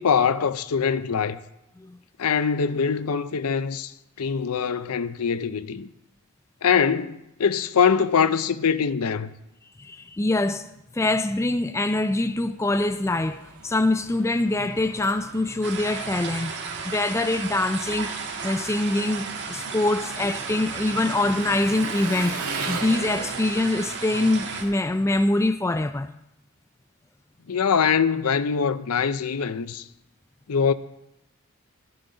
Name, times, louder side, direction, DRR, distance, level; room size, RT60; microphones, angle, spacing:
voice 1, 0.0-1.4 2.2-3.9 4.2-5.9 6.6-9.3 27.5-29.8 30.5-30.7, left 6 dB, 80° left, 0.6 m, -23 dB
voice 2, 9.8-10.7 10.9-16.5 16.8-18.1 18.4-22.4 22.7-26.1, left 2 dB, 10° left, 0.3 m, -24 dB
Engine, 12.2-25.8, right 3 dB, 90° right, 2.2 m, -39 dB
sound 1, 15.6-24.6, right 5 dB, 50° right, 1.9 m, -34 dB
12.5 x 12.5 x 3.9 m
head